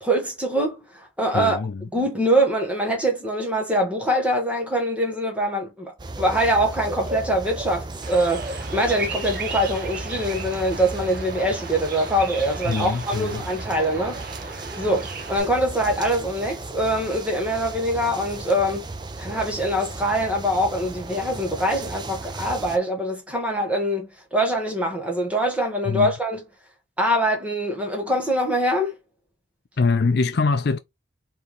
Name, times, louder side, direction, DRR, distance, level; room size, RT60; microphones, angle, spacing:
voice 1, 0.0-1.6 1.9-14.2 14.8-18.8 19.2-26.4 27.0-29.0, right 1 dB, 5° right, 1.3 m, -24 dB
voice 2, 1.3-1.9 12.7-13.4 25.9-26.1 29.8-30.8, left 4 dB, 55° left, 0.4 m, -23 dB
sound 1, 6.0-22.8, right 2 dB, 20° right, 0.4 m, -35 dB
Bird vocalization bird call bird song, 8.0-15.4, right 4 dB, 50° right, 1.0 m, -36 dB
4.3 x 3.5 x 3.1 m
head